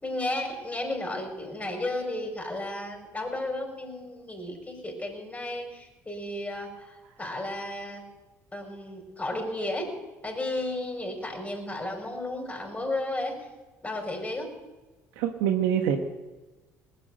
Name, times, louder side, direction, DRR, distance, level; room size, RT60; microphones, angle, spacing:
voice 1, 0.0-8.0 8.5-9.9 10.2-13.4 13.8-14.5, left 1 dB, 20° left, 2 dB, 5.5 m, -33 dB
voice 2, 15.2-16.0, right 9 dB, 80° right, 4 dB, 1.2 m, -25 dB
19.0 x 8.2 x 9.1 m, 1.2 s
hypercardioid pair, 65°, 7 cm